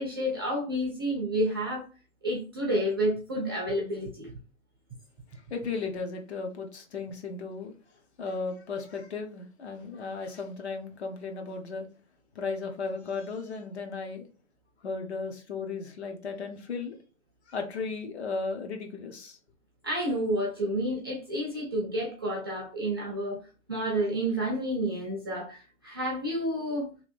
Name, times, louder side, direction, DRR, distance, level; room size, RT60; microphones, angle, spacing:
voice 1, 0.0-1.9 2.2-4.3 19.8-23.4 23.7-26.9, equal, 20° right, 0.5 m, -30 dB
voice 2, 5.3-7.7 8.2-11.9 12.3-14.3 14.8-16.9 17.5-19.4, left 4 dB, 50° left, 0.9 m, -35 dB
3.1 x 2.5 x 3.3 m
hypercardioid pair, 145°, 42 cm